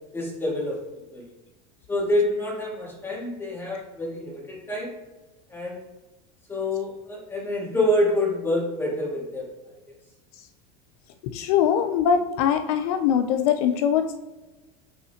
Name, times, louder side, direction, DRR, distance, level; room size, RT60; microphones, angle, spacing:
voice 1, 0.1-0.8 1.1-1.3 1.9-4.9 5.5-5.8 6.5-9.5, left 1 dB, 10° left, -4 dB, 2.0 m, -26 dB
voice 2, 11.3-14.2, left 8 dB, 80° left, 9 dB, 0.5 m, -22 dB
8.3 x 4.2 x 2.8 m, 1.1 s
supercardioid pair, 140°, 19 cm